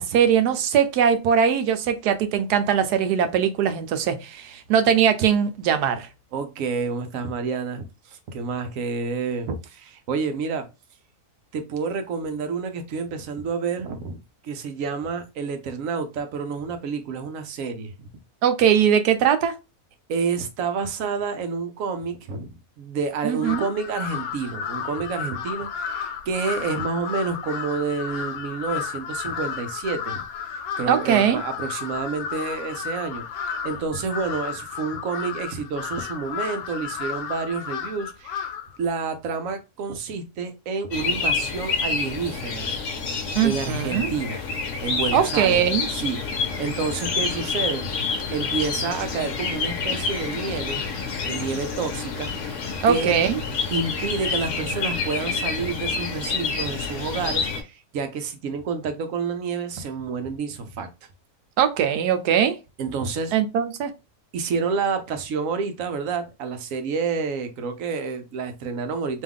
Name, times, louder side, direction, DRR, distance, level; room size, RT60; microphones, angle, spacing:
voice 1, 0.0-6.1 18.4-19.5 23.2-23.7 30.9-31.4 43.3-44.1 45.1-45.9 52.8-53.4 61.6-62.6 63.3-63.9, right 8 dB, 90° right, 1.2 m, -21 dB
voice 2, 6.3-10.6 11.5-14.2 14.4-18.1 20.1-22.5 22.8-30.2 30.5-38.5 38.8-42.7 43.4-44.5 44.8-50.8 51.2-52.6 52.9-53.1 53.7-60.9 62.8-63.3 64.3-69.2, right 5 dB, 60° right, 1.1 m, -29 dB
Crow, 23.4-38.8, left 7 dB, 75° left, 1.0 m, -33 dB
sound 1, 40.9-57.6, left 4 dB, 55° left, 1.1 m, -28 dB
3.5 x 3.0 x 3.6 m
omnidirectional pair, 1.7 m